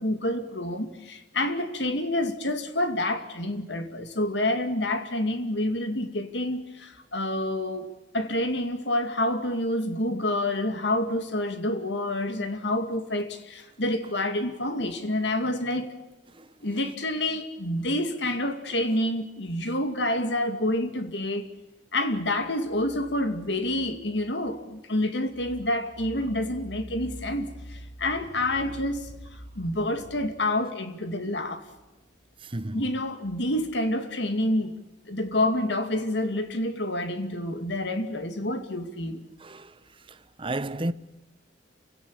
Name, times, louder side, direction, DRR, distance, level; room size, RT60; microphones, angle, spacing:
voice 1, 0.0-15.9 16.6-21.5 21.9-31.6 32.7-34.8 35.1-39.2, left 1 dB, 65° left, 2.4 m, -28 dB
voice 2, 32.5-32.8 39.4-39.7 40.4-40.9, right 1 dB, 30° right, 0.8 m, -31 dB
28.5 x 17.0 x 8.7 m
head